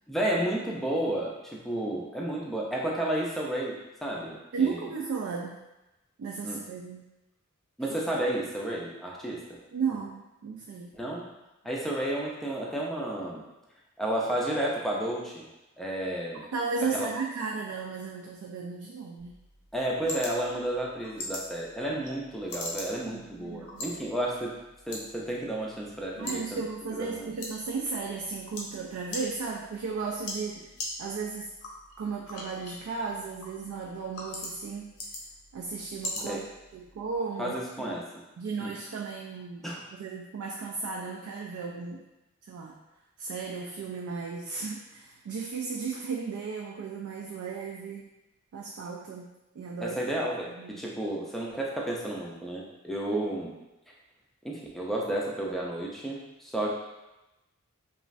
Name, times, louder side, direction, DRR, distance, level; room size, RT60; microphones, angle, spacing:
voice 1, 0.1-3.7 4.0-4.8 6.4-6.6 7.8-9.4 10.9-11.3 11.6-13.4 14.0-15.5 15.8-16.4 16.9-17.1 19.7-24.6 24.9-26.6 26.9-27.3 36.2-36.4 37.4-38.2 38.6-38.7 39.6-39.8 49.8-53.5 54.4-56.7, right 1 dB, ahead, -3 dB, 0.4 m, -32 dB
voice 2, 4.5-5.6 6.2-7.1 9.7-10.9 16.5-19.4 23.1-23.8 26.2-30.7 31.0-31.5 32.0-35.0 35.5-36.5 36.7-37.9 38.4-42.0 42.5-42.8 43.2-48.1 48.5-50.0 50.5-50.8 53.1-53.2, right 5 dB, 75° right, -1 dB, 0.3 m, -35 dB
sound 1, 19.2-37.2, left 1 dB, 80° left, 0.6 m, -42 dB
3.0 x 2.3 x 2.5 m, 0.97 s
head